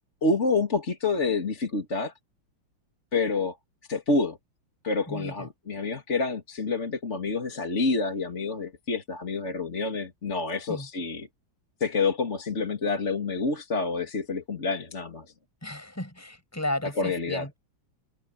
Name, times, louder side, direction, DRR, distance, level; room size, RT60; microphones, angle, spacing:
voice 1, 0.2-2.1 3.1-3.6 3.9-4.4 4.8-11.3 11.8-15.3 17.0-17.5, left 3 dB, 35° left, 2.6 m, -28 dB
voice 2, 15.6-17.6, left 1 dB, 5° left, 7.7 m, -34 dB
open air
omnidirectional pair, 2.3 m